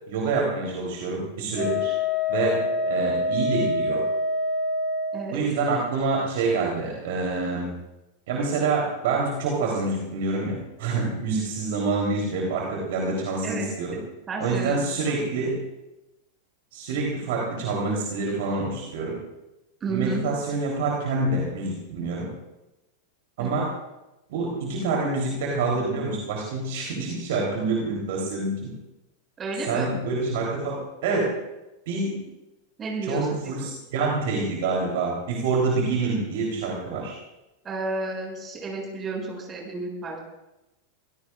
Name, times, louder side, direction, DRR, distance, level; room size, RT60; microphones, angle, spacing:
voice 1, 0.1-1.9 2.3-4.0 5.3-7.7 8.3-14.0 14.4-15.6 16.7-19.2 19.9-22.3 23.4-23.7 24.3-28.7 29.7-31.3 31.9-32.2 33.0-37.2, right 3 dB, 55° right, -2 dB, 3.7 m, -27 dB
Wind instrument woodwind instrument, 1.6-5.2, left 2 dB, 35° left, 3.4 m, -26 dB
voice 2, 14.3-15.3 19.8-20.2 23.4-23.6 29.4-29.9 32.8-33.8 37.6-40.2, right 3 dB, 20° right, -1 dB, 7.5 m, -32 dB
25.5 x 16.5 x 2.5 m, 0.95 s
figure-of-eight pair, 90°, 0 cm